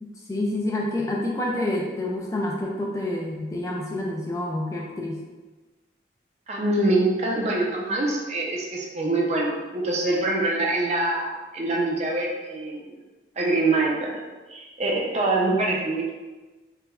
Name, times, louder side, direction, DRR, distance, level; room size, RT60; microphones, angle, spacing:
voice 1, 0.0-5.2 15.4-15.6, left 1 dB, 20° left, -2 dB, 0.3 m, -28 dB
voice 2, 6.5-13.0 13.4-14.2 14.5-16.1, right 2 dB, 40° right, -2 dB, 0.5 m, -24 dB
4.6 x 2.1 x 2.4 m, 1.2 s
head